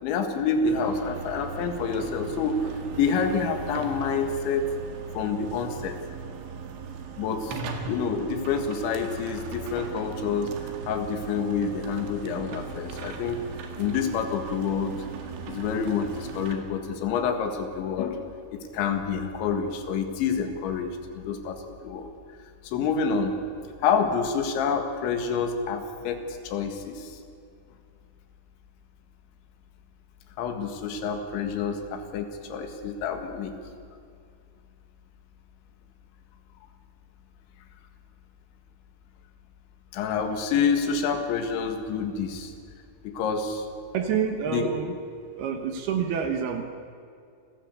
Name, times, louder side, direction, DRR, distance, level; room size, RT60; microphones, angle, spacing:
voice 1, 0.0-2.6 2.9-4.7 5.2-6.0 7.2-7.6 7.9-10.5 10.9-13.5 13.8-15.0 15.5-22.1 22.6-23.4 23.8-27.2 30.4-33.5 39.9-42.5 43.0-43.7 44.5-44.7, left 6 dB, 75° left, 5 dB, 4.0 m, -28 dB
sound 1, 0.6-16.6, right 5 dB, 85° right, 4.4 m, -38 dB
voice 2, 43.9-45.0 45.3-46.6, right 7 dB, 70° right, 6 dB, 2.9 m, -27 dB
27.5 x 15.5 x 8.3 m, 2.3 s
omnidirectional pair, 5.4 m